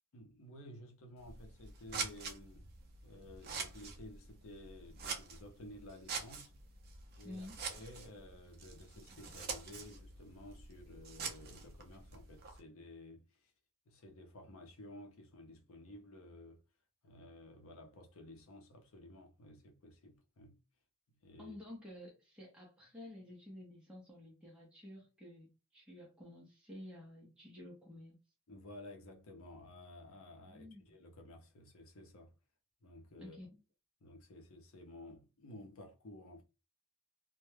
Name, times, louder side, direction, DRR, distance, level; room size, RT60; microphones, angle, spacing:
voice 1, 0.1-2.7 3.0-6.5 7.1-13.5 13.9-16.6 17.0-20.6 21.1-21.6 28.5-32.3 32.8-33.4 34.0-36.4, left 1 dB, 65° left, 0.6 m, -54 dB
Scissors, 1.2-12.6, right 5 dB, 45° right, 0.5 m, -46 dB
voice 2, 7.2-7.6 21.4-28.2 30.5-31.0 33.2-33.5, left 1 dB, 5° right, 0.6 m, -51 dB
2.1 x 2.1 x 3.2 m
head